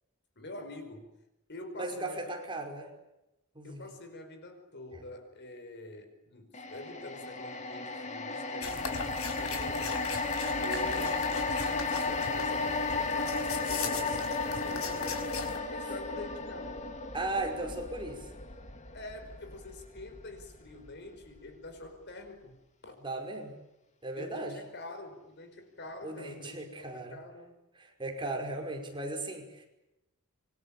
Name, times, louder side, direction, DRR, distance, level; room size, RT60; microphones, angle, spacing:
voice 1, 0.4-1.1 1.5-2.4 3.6-10.1 10.6-16.8 18.9-22.6 22.8-23.0 24.1-27.6, left 2 dB, 55° left, 7 dB, 5.1 m, -46 dB
voice 2, 1.8-2.9 3.6-3.8 4.9-5.0 10.6-11.0 13.9-14.1 17.1-18.3 23.0-23.5 24.0-24.5 26.0-27.2 27.8-29.7, right 2 dB, 25° right, 3 dB, 5.4 m, -37 dB
sound 1, 6.5-20.9 21.2-21.4, left 3 dB, 35° left, 2.8 m, -34 dB
sound 2, 8.6-15.6, left 4 dB, 70° left, 5.2 m, -39 dB
26.5 x 24.5 x 8.8 m, 0.93 s
head